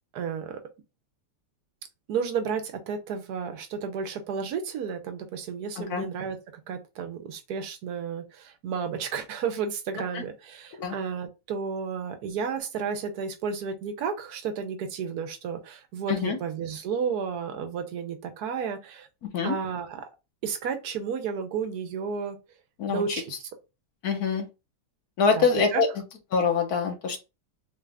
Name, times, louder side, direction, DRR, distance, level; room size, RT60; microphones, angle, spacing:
voice 1, 0.1-0.6 2.1-6.4 6.7-19.1 19.4-20.1 20.4-22.4 22.9-23.5 25.3-25.8, right 6 dB, 70° right, 6 dB, 1.2 m, -32 dB
voice 2, 24.0-24.5 25.2-25.9 26.3-27.2, left 5 dB, 70° left, 3 dB, 1.3 m, -24 dB
3.9 x 2.4 x 3.3 m, 0.27 s
omnidirectional pair, 1.8 m